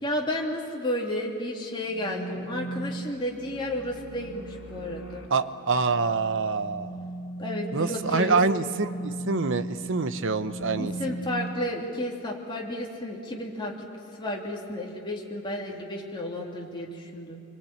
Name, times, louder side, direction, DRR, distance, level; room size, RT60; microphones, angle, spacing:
voice 1, 0.0-5.2 7.4-8.4 10.8-13.7 14.2-17.4, left 1 dB, 20° left, -2 dB, 3.0 m, -32 dB
sound 1, 1.8-11.5, right 2 dB, 60° left, 2.9 m, -38 dB
voice 2, 5.3-7.0 7.7-11.2, right 4 dB, 55° right, 12 dB, 0.9 m, -26 dB
26.0 x 23.5 x 8.9 m, 2.7 s
head